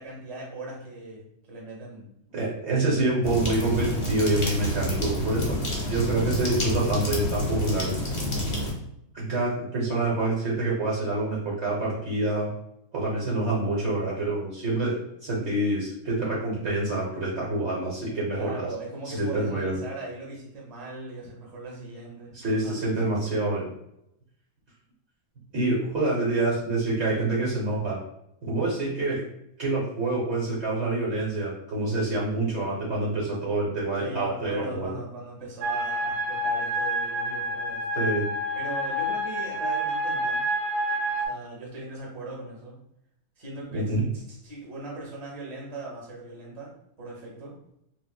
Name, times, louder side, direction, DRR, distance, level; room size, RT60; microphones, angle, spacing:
voice 1, 0.0-2.1 18.3-23.1 26.0-26.2 34.0-37.9 38.5-40.4 41.2-42.8 43.4-47.5, right 2 dB, 30° right, -3 dB, 1.0 m, -39 dB
voice 2, 2.3-7.9 9.1-12.5 12.9-18.7 19.1-19.8 22.3-23.7 25.5-28.0 28.4-29.2 29.6-34.9 38.0-38.3 43.7-44.0, right 2 dB, 50° right, -5 dB, 1.0 m, -27 dB
sound 1, 3.2-8.7, left 1 dB, 40° left, 0.4 m, -28 dB
sound 2, 35.6-41.3, equal, 85° right, 1.1 m, -28 dB
3.4 x 2.5 x 2.2 m, 0.79 s
omnidirectional pair, 1.6 m